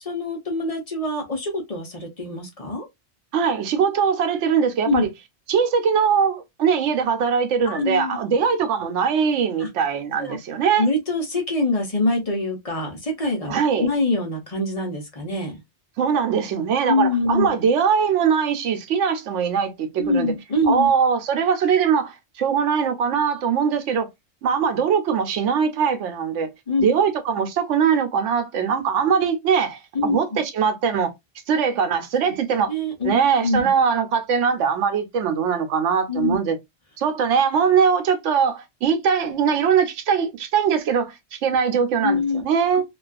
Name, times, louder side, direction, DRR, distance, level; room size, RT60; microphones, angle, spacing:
voice 1, 0.1-2.9 4.8-5.1 7.6-8.2 9.6-9.7 10.2-10.4 10.8-15.6 16.9-17.5 20.0-20.9 26.7-26.9 29.9-30.4 32.7-33.1 33.4-33.7 36.1-36.4 42.0-42.4, left 2 dB, 35° left, 0.7 m, -24 dB
voice 2, 3.3-5.1 5.5-10.9 13.5-13.9 16.0-20.3 20.7-24.1 24.4-26.5 26.8-31.1 31.5-32.7 33.0-36.6 37.0-42.8, right 6 dB, 90° right, 1.0 m, -21 dB
2.4 x 2.3 x 2.3 m
omnidirectional pair, 1.2 m